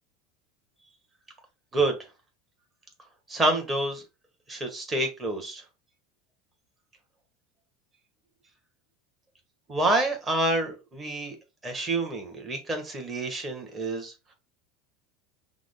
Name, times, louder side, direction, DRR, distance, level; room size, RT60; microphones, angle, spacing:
voice 1, 3.3-4.0 4.5-5.6 9.7-11.4 11.6-14.1, right 2 dB, 15° right, 3 dB, 1.2 m, -27 dB
5.9 x 2.1 x 3.9 m, 0.26 s
supercardioid pair, 155°, 0 cm